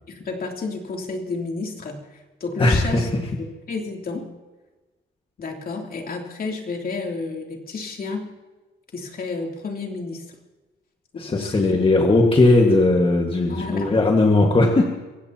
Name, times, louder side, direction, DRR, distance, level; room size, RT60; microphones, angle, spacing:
voice 1, 0.1-3.1 3.4-4.3 5.4-8.3 8.9-10.2 11.1-11.9 13.5-14.0, left 3 dB, 50° left, 1 dB, 3.2 m, -31 dB
voice 2, 2.6-3.2 11.2-14.9, left 2 dB, 25° left, 2 dB, 1.8 m, -18 dB
24.5 x 16.5 x 3.0 m, 1.2 s
cardioid pair, 90°, 20 cm